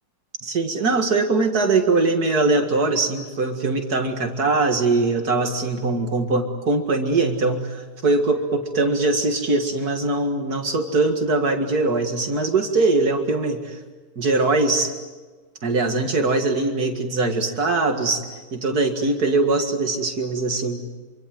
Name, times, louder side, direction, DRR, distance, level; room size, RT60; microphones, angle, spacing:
voice 1, 0.4-13.8 14.2-14.9 15.6-20.8, right 3 dB, 65° right, 4 dB, 2.5 m, -22 dB
26.5 x 25.5 x 7.8 m, 1.3 s
omnidirectional pair, 1.8 m